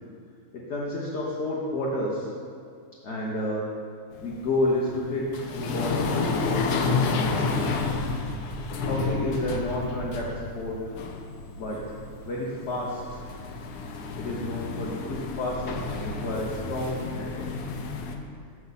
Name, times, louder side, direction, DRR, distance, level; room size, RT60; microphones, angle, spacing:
voice 1, 0.5-2.3 3.0-3.6 4.2-7.3 8.8-10.8 11.6-11.9 12.2-13.3 14.2-17.5, left 1 dB, 50° left, -5 dB, 1.2 m, -30 dB
sound 1, 4.1-18.2, left 4 dB, 85° left, 1.2 m, -31 dB
7.2 x 6.5 x 4.1 m, 2.3 s
omnidirectional pair, 1.6 m